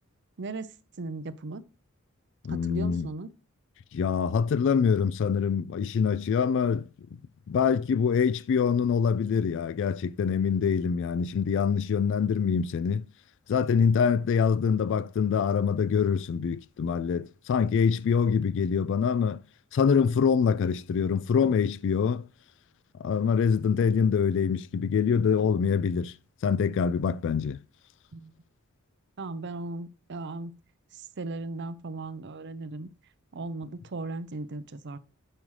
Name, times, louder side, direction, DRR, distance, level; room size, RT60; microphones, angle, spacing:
voice 1, 0.4-0.7 1.0-1.6 2.5-3.3 28.1-28.3 29.2-30.5 30.9-32.9 33.3-35.0, right 3 dB, 55° right, 0.6 m, -37 dB
voice 2, 2.4-3.1 3.9-6.9 7.5-13.0 13.5-19.4 19.7-22.3 23.0-26.1 26.4-27.6, left 6 dB, 60° left, 0.3 m, -25 dB
8.9 x 6.3 x 3.2 m
head